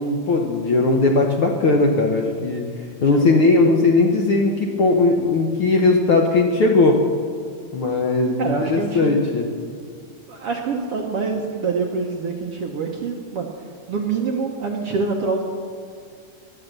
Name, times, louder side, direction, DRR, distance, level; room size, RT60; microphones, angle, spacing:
voice 1, 0.0-7.0 7.7-9.5, left 3 dB, 75° left, 1 dB, 1.2 m, -18 dB
voice 2, 3.0-3.7 8.4-9.2 10.3-15.4, right 4 dB, 65° right, 1 dB, 1.5 m, -26 dB
18.0 x 11.5 x 6.6 m, 2.2 s
omnidirectional pair, 3.9 m